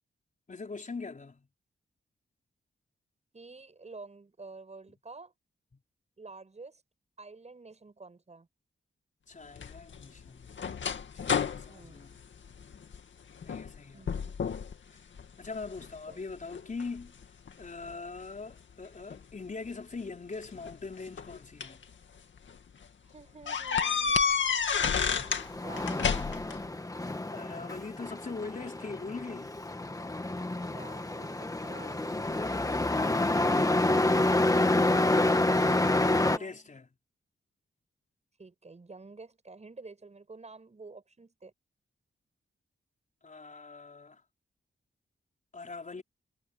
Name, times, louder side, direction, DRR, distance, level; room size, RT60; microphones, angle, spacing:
voice 1, 0.5-1.5 9.3-10.5 11.1-12.2 13.4-14.1 15.4-17.1 17.6-21.8 24.9-25.3 25.6-25.7 27.3-29.6 34.8-36.9 43.2-44.2 45.5-46.0, left 4 dB, 40° left, 4.6 m, -42 dB
voice 2, 3.3-5.3 6.2-6.8 7.2-8.5 11.7-12.1 13.9-14.4 16.1-16.2 23.0-24.6 25.1-25.3 25.6-26.2 30.4-32.3 36.2-36.8 38.4-41.5, right 3 dB, 35° right, 7.4 m, -50 dB
sound 1, 9.6-13.0 13.4-13.8 14.1-14.7 15.2-15.9 16.5-17.9 19.1-19.2 20.4-21.8 22.4-22.5 22.8-22.9 23.5-25.5 25.8-26.6, left 6 dB, 75° left, 2.2 m, -30 dB
Truck, 25.3-36.4, left 2 dB, 15° left, 1.6 m, -28 dB
wide cardioid pair, 110°, 20 cm